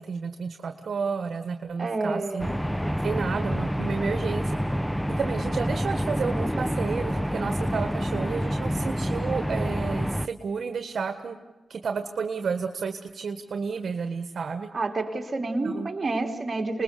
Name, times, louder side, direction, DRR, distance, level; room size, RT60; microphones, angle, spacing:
voice 1, 0.0-2.5 3.0-4.5 5.2-11.4 11.7-14.7 15.6-15.9, right 5 dB, 75° right, 6 dB, 1.5 m, -31 dB
voice 2, 1.8-2.6 14.7-16.8, right 3 dB, 40° right, 3 dB, 3.2 m, -29 dB
sound 1, 2.4-10.3, equal, ahead, 0.7 m, -28 dB
27.5 x 20.5 x 6.8 m, 1.2 s
wide cardioid pair, 90°, 0 cm